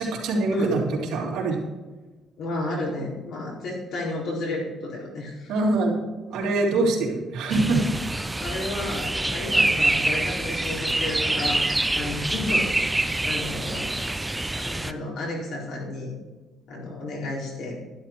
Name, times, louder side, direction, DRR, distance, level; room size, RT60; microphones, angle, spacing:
voice 1, 0.0-1.6 5.5-8.1, right 2 dB, 80° right, -2 dB, 3.2 m, -24 dB
voice 2, 2.4-5.5 6.8-6.9 8.4-11.7 11.9-13.9 14.5-16.2 16.7-17.8, left 2 dB, 60° left, -3 dB, 4.3 m, -32 dB
sound 1, 7.5-14.9, right 2 dB, 10° right, 0.4 m, -26 dB
11.5 x 11.0 x 4.6 m, 1.2 s
cardioid pair, 160°, 0 cm